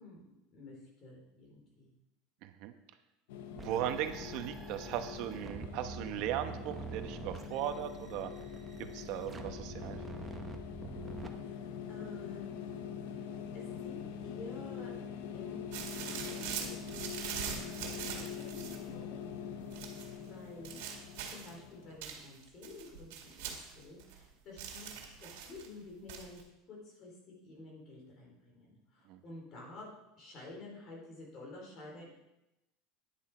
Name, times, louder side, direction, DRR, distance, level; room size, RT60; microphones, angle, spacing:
voice 1, 0.0-1.9 11.4-12.8 13.1-14.9 15.3-17.1 17.3-19.2 20.1-20.8 21.2-27.2 27.4-29.9 30.2-32.1, left 3 dB, 40° left, -2 dB, 4.3 m, -51 dB
voice 2, 2.4-2.7 3.5-8.3 8.8-10.0 29.1-29.2, right 11 dB, 60° right, 8 dB, 0.9 m, -37 dB
sound 1, 3.3-22.0, left 8 dB, 85° left, 0.9 m, -44 dB
sound 2, 3.6-11.3, right 5 dB, 15° right, 0.9 m, -46 dB
sound 3, 15.7-18.9 19.7-20.1 20.6-21.6 22.0-24.3 24.6-25.7 26.1-26.4, right 8 dB, 80° right, 2.0 m, -42 dB
10.0 x 7.3 x 5.0 m, 0.93 s
supercardioid pair, 140°, 0 cm